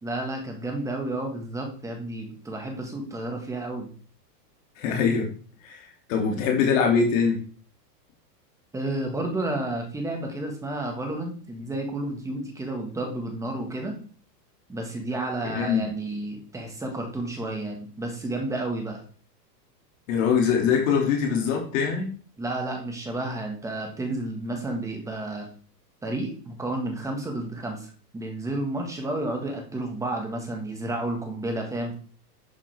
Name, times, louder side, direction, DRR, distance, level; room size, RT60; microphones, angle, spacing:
voice 1, 0.0-3.9 8.7-14.0 14.7-19.0 22.4-25.5 26.0-31.9, right 2 dB, 5° right, 2 dB, 1.7 m, -31 dB
voice 2, 4.8-5.3 5.6-7.4 15.4-15.8 20.1-22.1, left 6 dB, 50° left, 0 dB, 2.8 m, -23 dB
11.0 x 7.3 x 3.6 m, 0.42 s
supercardioid pair, 160°, 50 cm